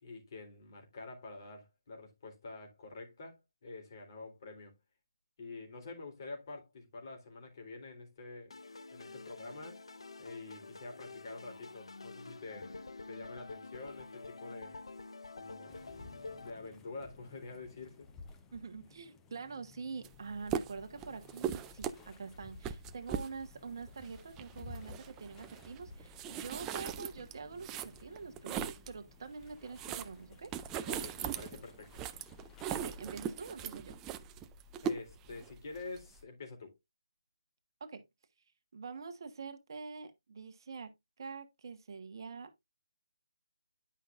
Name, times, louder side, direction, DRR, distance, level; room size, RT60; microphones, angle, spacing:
voice 1, 0.0-4.7 5.4-8.5 8.9-9.8 10.2-12.8 13.1-14.8 15.3-15.8 16.4-18.1 30.9-32.0 34.8-36.7, left 3 dB, 45° left, 3.7 m, -47 dB
sound 1, 8.5-16.5, left 3 dB, 85° left, 0.9 m, -48 dB
sound 2, 15.7-32.9, left 3 dB, 10° left, 0.7 m, -56 dB
voice 2, 18.5-30.5 32.7-33.9 37.8-38.0 38.7-40.9 41.2-42.6, right 5 dB, 50° right, 1.3 m, -45 dB
sound 3, 20.0-20.2 20.4-29.0 29.4-36.2, right 8 dB, 10° right, 0.4 m, -40 dB
11.0 x 5.6 x 2.5 m
hypercardioid pair, 160°, 3 cm